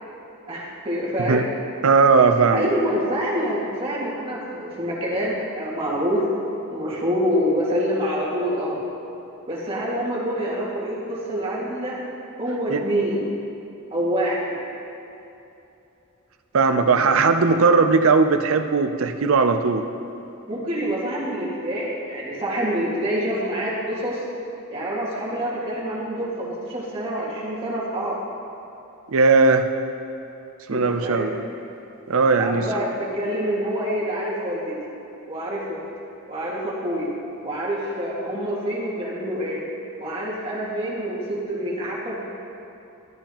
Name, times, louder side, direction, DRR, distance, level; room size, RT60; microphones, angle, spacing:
voice 1, 0.5-1.5 2.5-6.2 6.7-8.8 9.5-12.0 12.4-13.4 13.9-14.6 20.5-24.2 24.7-28.2 30.7-31.3 32.4-34.8 35.3-35.8 36.3-37.1 37.4-39.6 40.0-42.2, equal, 25° right, -7 dB, 2.0 m, -26 dB
voice 2, 1.8-2.7 12.7-12.8 16.5-19.9 29.1-29.7 30.7-31.4 32.1-32.8, right 4 dB, 70° right, 8 dB, 0.5 m, -18 dB
13.5 x 8.7 x 3.0 m, 2.8 s
head